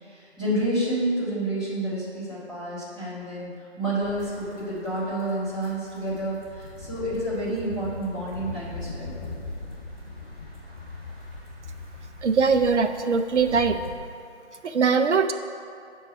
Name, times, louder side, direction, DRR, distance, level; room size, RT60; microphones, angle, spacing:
voice 1, 0.1-3.5 3.8-9.1, right 1 dB, 5° right, -17 dB, 1.2 m, -29 dB
sound 1, 4.0-14.0, left 3 dB, 10° left, 1.2 m, -40 dB
voice 2, 12.2-13.8 14.6-15.3, right 5 dB, 85° right, 8 dB, 0.6 m, -21 dB
8.2 x 4.6 x 5.5 m, 2.4 s
figure-of-eight pair, 175°, 34 cm